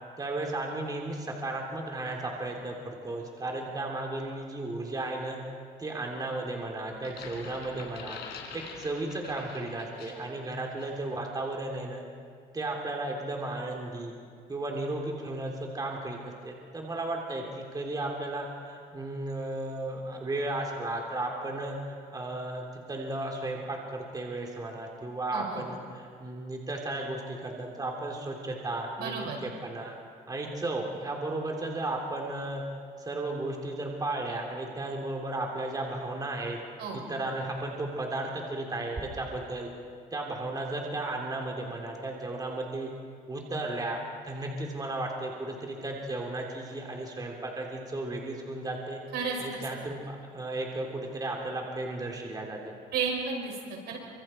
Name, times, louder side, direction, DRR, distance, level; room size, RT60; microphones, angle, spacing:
voice 1, 0.2-5.4 5.8-8.2 8.5-12.0 12.5-14.1 14.5-16.2 16.4-29.9 30.3-32.6 33.0-36.6 36.9-39.7 40.1-42.9 43.3-44.0 44.2-49.0 49.4-52.8, right 2 dB, 20° right, 0 dB, 3.2 m, -34 dB
sound 1, 6.9-10.4 10.8-11.0, left 6 dB, 75° left, 4.3 m, -45 dB
voice 2, 25.3-25.7 29.0-29.4 36.8-37.1 49.1-49.6 52.9-54.0, right 5 dB, 75° right, 1 dB, 6.0 m, -33 dB
29.0 x 25.5 x 4.5 m, 2.1 s
cardioid pair, 110°, 17 cm